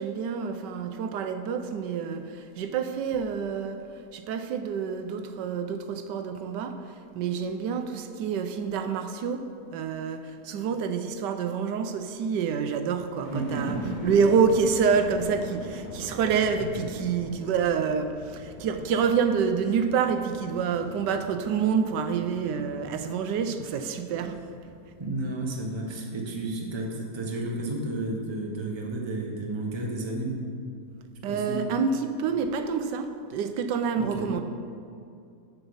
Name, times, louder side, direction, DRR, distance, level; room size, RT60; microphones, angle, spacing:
voice 1, 0.0-3.8 4.1-24.4 31.2-34.4, right 6 dB, 85° right, 8 dB, 1.3 m, -27 dB
sound 1, 13.2-27.2 27.7-28.5, left 2 dB, 55° left, 0.5 m, -45 dB
voice 2, 13.3-14.1 16.8-16.9 25.0-30.4 31.3-31.6 34.0-34.3, right 2 dB, 20° right, 0 dB, 0.8 m, -32 dB
7.1 x 7.0 x 5.5 m, 2.4 s
omnidirectional pair, 1.8 m